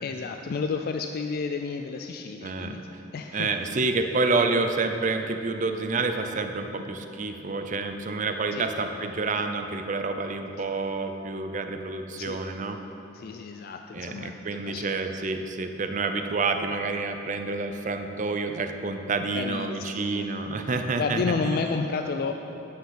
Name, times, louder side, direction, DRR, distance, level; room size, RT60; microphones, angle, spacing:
voice 1, 0.0-2.8 3.1-3.5 8.5-8.7 12.2-12.4 13.1-15.0 19.3-20.3 21.0-22.3, left 5 dB, 50° left, 5 dB, 0.3 m, -31 dB
voice 2, 2.4-2.8 3.3-12.8 13.9-21.7, right 3 dB, 40° right, 7 dB, 0.5 m, -28 dB
9.9 x 5.8 x 5.7 m, 3.0 s
head